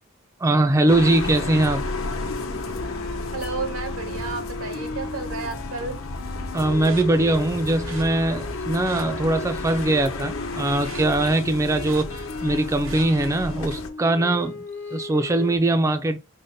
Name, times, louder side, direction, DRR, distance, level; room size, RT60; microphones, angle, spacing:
voice 1, 0.4-1.8 6.5-14.6 14.9-16.2, right 2 dB, 15° right, 0.3 m, -21 dB
sound 1, 0.8-15.6, left 4 dB, 50° left, 0.5 m, -36 dB
sound 2, 0.9-13.9, left 2 dB, 80° left, 0.9 m, -33 dB
voice 2, 3.3-6.0, right 4 dB, 85° right, 1.2 m, -32 dB
sound 3, 6.8-7.4 7.8-8.1 8.7-10.0 10.3-12.5 12.8-13.3 13.7-14.0 14.3-14.4, right 5 dB, 70° right, 0.9 m, -43 dB
5.1 x 2.1 x 3.9 m
head